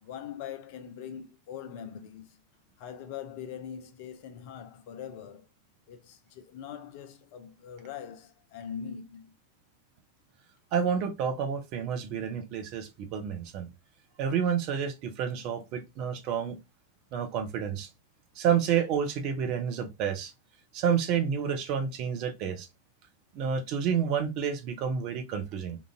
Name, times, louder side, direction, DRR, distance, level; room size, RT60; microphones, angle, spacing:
voice 1, 0.0-2.4 2.8-5.5 5.9-9.3, left 8 dB, 50° left, 0.5 m, -42 dB
voice 2, 10.7-13.7 14.2-16.6 17.1-17.9 18.4-20.3 20.7-22.7 23.3-25.8, right 7 dB, 40° right, 0.7 m, -29 dB
2.9 x 2.5 x 2.3 m
figure-of-eight pair, 90°, 0 cm